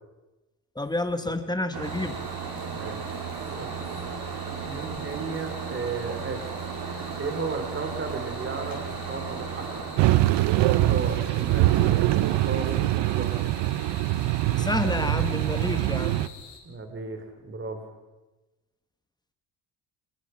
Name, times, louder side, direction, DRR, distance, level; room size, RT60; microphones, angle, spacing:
voice 1, 0.8-2.2 14.6-16.2, left 2 dB, 10° left, 9 dB, 1.9 m, -29 dB
sound 1, 1.7-11.9, right 6 dB, 60° right, 2.8 m, -35 dB
sound 2, 1.8-16.6, left 7 dB, 85° left, 5.3 m, -47 dB
voice 2, 2.7-3.8 4.6-6.6 7.2-9.9 10.7-13.4 16.6-17.9, right 4 dB, 30° right, 7 dB, 3.9 m, -35 dB
sound 3, 10.0-16.3, right 15 dB, 75° right, 0.9 m, -23 dB
27.5 x 20.5 x 5.9 m, 1.1 s
cardioid pair, 115°, 42 cm